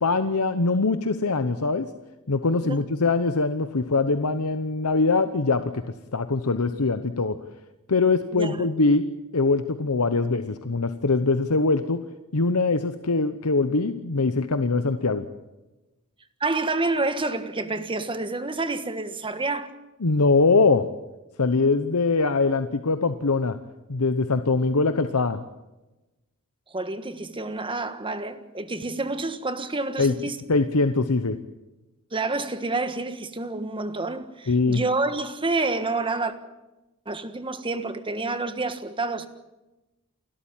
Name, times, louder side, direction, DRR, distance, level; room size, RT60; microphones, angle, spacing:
voice 1, 0.0-1.9 2.3-5.8 6.1-7.4 7.9-9.0 9.3-12.0 12.3-15.2 20.0-20.9 21.4-23.6 23.9-25.4 30.0-30.1 30.5-31.4 34.5-34.8, left 3 dB, 80° left, 1.0 m, -22 dB
voice 2, 8.3-8.7 16.4-19.7 26.7-30.4 32.1-36.3 37.0-39.3, right 3 dB, 25° right, 1.5 m, -28 dB
29.0 x 13.0 x 9.0 m
head